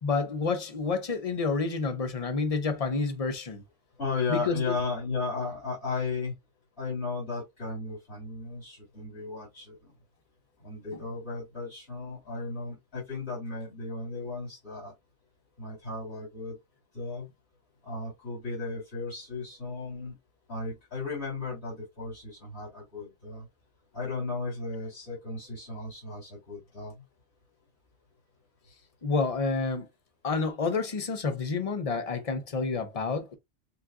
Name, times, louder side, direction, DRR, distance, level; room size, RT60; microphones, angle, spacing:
voice 1, 0.0-3.6 4.3-4.7 10.9-11.0 29.0-29.9 30.2-33.3, left 4 dB, 35° left, 0.7 m, -29 dB
voice 2, 4.0-6.3 6.8-9.9 10.6-14.9 15.6-16.6 16.9-17.3 17.8-20.1 20.5-23.4 23.9-26.9, left 3 dB, 70° left, 3.2 m, -35 dB
6.8 x 2.5 x 2.4 m
omnidirectional pair, 1.1 m